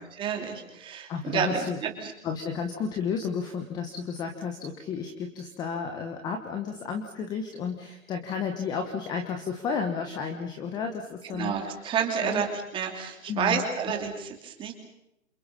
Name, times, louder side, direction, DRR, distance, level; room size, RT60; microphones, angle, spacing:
voice 1, 0.0-2.1 11.3-14.7, right 7 dB, 10° right, 3 dB, 3.1 m, -30 dB
voice 2, 1.1-1.8 2.2-11.7 12.2-12.4 13.3-13.7, left 6 dB, 10° left, 5 dB, 1.2 m, -32 dB
28.0 x 28.0 x 5.6 m, 0.84 s
hypercardioid pair, 160°, 41 cm